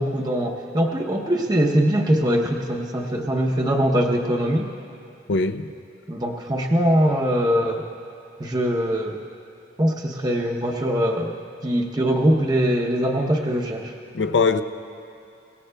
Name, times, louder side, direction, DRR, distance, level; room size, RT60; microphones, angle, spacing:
voice 1, 0.0-4.7 6.1-7.9 8.4-9.2 9.8-11.4 11.6-13.9, equal, 25° right, -1 dB, 0.7 m, -22 dB
voice 2, 5.3-5.7 14.1-14.6, left 4 dB, 80° left, 9 dB, 0.6 m, -21 dB
25.0 x 18.0 x 2.2 m, 2.7 s
head